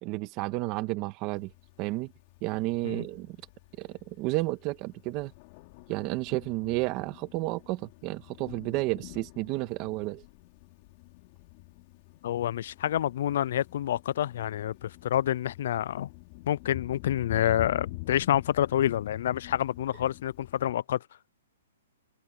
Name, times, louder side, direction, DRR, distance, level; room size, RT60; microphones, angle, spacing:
voice 1, 0.0-1.5 1.8-2.1 2.4-3.4 3.8-5.3 5.9-10.2, right 20 dB, 25° right, 1.9 m, -31 dB
Thunder, 1.4-20.7, left 22 dB, 30° left, 5.0 m, -47 dB
voice 2, 12.2-16.1 16.5-21.0, left 11 dB, 50° left, 0.4 m, -28 dB
hypercardioid pair, 165°, 0 cm